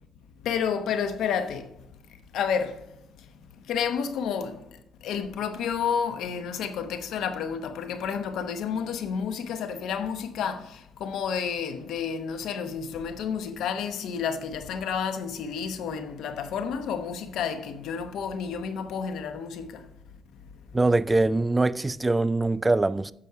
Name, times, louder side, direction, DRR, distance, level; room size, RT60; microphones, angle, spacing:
voice 1, 0.4-1.7 2.3-2.8 3.7-4.6 5.0-19.8, left 7 dB, 80° left, 0.9 m, -30 dB
voice 2, 20.7-23.1, right 2 dB, 20° right, 0.3 m, -23 dB
9.8 x 6.4 x 4.7 m
cardioid pair, 90°, 0 cm